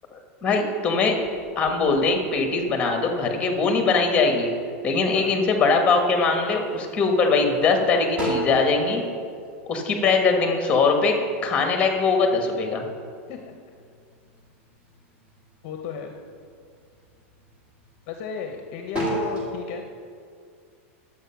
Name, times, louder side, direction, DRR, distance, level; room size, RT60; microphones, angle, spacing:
voice 1, 0.4-1.2 1.5-4.5 4.8-9.0 9.7-11.2 11.4-12.8, left 4 dB, 15° left, 3 dB, 1.5 m, -21 dB
sound 1, 1.2-3.1 3.6-4.3 4.8-5.4 5.8-6.7 7.2-7.3 7.7-10.6 10.9-13.2 13.6-14.6 15.0-15.6 16.1-16.3 16.8-18.5 18.8-19.5, right 1 dB, 15° right, 2.5 m, -32 dB
voice 2, 15.6-16.1 18.1-20.0, left 6 dB, 45° left, 4 dB, 0.8 m, -35 dB
11.0 x 7.8 x 5.8 m, 2.2 s
supercardioid pair, 155°, 7 cm